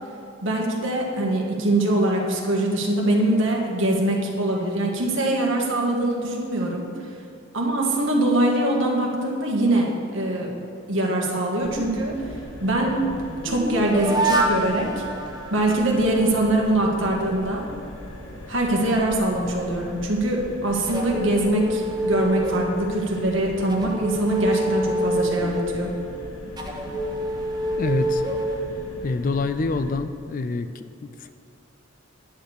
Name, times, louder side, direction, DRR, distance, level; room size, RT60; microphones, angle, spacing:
voice 1, 0.4-6.9 7.5-10.5 10.9-12.2 12.6-13.0 13.4-15.0 15.5-17.7 18.5-25.9, right 1 dB, 60° right, -1 dB, 1.6 m, -23 dB
sound 1, 11.6-29.9, left 1 dB, 85° left, 1.3 m, -41 dB
sound 2, 12.4-16.3 20.9-23.2 23.7-29.3, right 1 dB, 20° right, 0.9 m, -27 dB
voice 2, 27.8-28.2 29.0-31.3, left 3 dB, 40° left, 10 dB, 0.3 m, -26 dB
10.0 x 5.1 x 8.0 m, 2.6 s
head